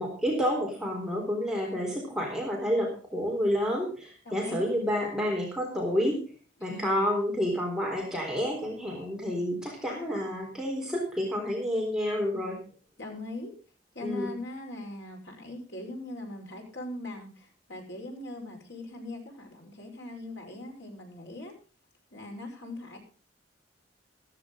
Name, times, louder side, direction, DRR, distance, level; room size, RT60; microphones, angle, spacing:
voice 1, 0.0-6.2 6.6-12.6 14.0-14.3, equal, 5° right, -1 dB, 3.8 m, -29 dB
voice 2, 1.7-2.1 4.2-4.7 6.6-7.0 13.0-13.5 13.9-21.5 22.1-23.0, left 1 dB, 70° left, 1 dB, 5.1 m, -40 dB
14.5 x 14.5 x 3.8 m, 0.38 s
head